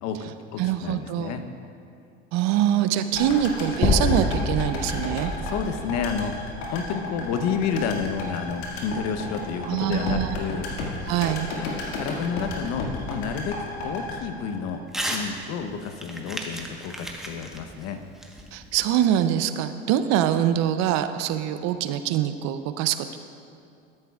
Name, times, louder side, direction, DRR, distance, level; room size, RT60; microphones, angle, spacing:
voice 1, 0.0-1.4 3.2-3.3 5.4-10.7 11.5-13.6 13.8-18.0, left 6 dB, 55° left, 7 dB, 0.9 m, -30 dB
voice 2, 0.6-1.4 2.3-5.3 9.6-10.3 11.1-11.5 18.5-23.2, right 10 dB, 55° right, 10 dB, 0.6 m, -24 dB
sound 1, 3.1-15.3 15.6-15.7, left 2 dB, 75° left, 2.0 m, -33 dB
sound 2, 3.8-8.0, left 3 dB, 20° left, 0.7 m, -28 dB
Crumpling crinkling / Tearing, 14.9-15.3 15.6-18.9, right 1 dB, ahead, 1.1 m, -34 dB
13.0 x 10.5 x 2.4 m, 2.4 s
hypercardioid pair, 85°, 32 cm